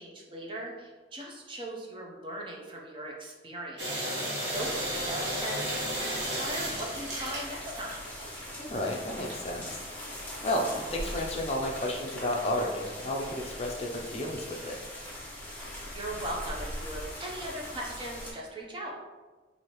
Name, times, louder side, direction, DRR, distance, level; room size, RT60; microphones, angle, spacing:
voice 1, 0.0-8.0 15.5-18.9, right 1 dB, 30° right, -1 dB, 0.6 m, -39 dB
sound 1, 3.8-8.2 8.7-11.7, right 1 dB, 80° right, 1.2 m, -34 dB
sound 2, 4.4-18.3, left 1 dB, 10° left, 0.9 m, -41 dB
voice 2, 8.6-9.8 10.4-14.8, left 1 dB, 35° left, 0 dB, 0.4 m, -32 dB
4.7 x 2.7 x 2.9 m, 1.2 s
head